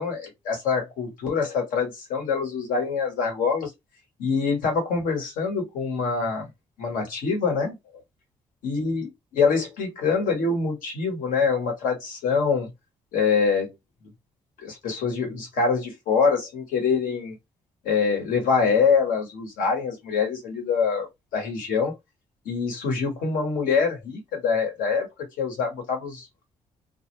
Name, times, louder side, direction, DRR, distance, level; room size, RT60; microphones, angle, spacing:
voice 1, 0.0-3.7 4.2-6.5 6.8-7.8 8.6-12.7 13.1-13.7 14.6-17.4 17.8-21.9 22.4-25.1 25.4-26.3, left 5 dB, 80° left, 1.2 m, -25 dB
2.2 x 2.2 x 3.0 m
hypercardioid pair, 50°, 14 cm